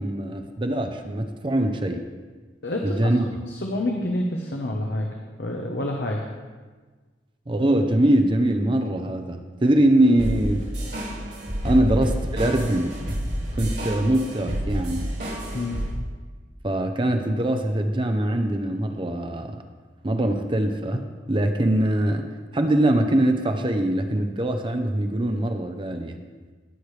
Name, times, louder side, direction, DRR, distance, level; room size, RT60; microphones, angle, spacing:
voice 1, 0.0-2.1 2.8-3.3 7.5-10.7 11.6-13.0 13.6-15.1 16.6-19.6 20.0-22.3 22.5-26.2, right 1 dB, 30° right, 6 dB, 0.6 m, -22 dB
voice 2, 2.6-3.1 3.6-5.1 5.4-6.2 11.7-11.8 15.5-15.8, left 1 dB, 70° left, 0 dB, 1.0 m, -27 dB
sound 1, 10.2-15.9, equal, 70° right, 3.2 m, -29 dB
18.5 x 6.5 x 3.3 m, 1.4 s
head